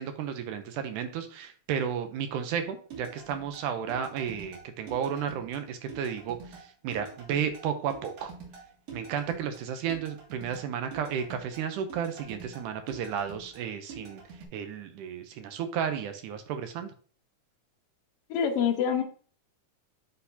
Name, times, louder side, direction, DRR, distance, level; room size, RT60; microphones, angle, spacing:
voice 1, 0.0-8.3 8.9-14.2 14.5-16.9, right 8 dB, 80° right, 7 dB, 2.1 m, -33 dB
sound 1, 2.9-14.5, right 4 dB, 55° right, 3.1 m, -46 dB
voice 2, 18.3-19.0, left 7 dB, 65° left, 4 dB, 1.6 m, -25 dB
9.7 x 4.3 x 2.7 m, 0.42 s
omnidirectional pair, 3.6 m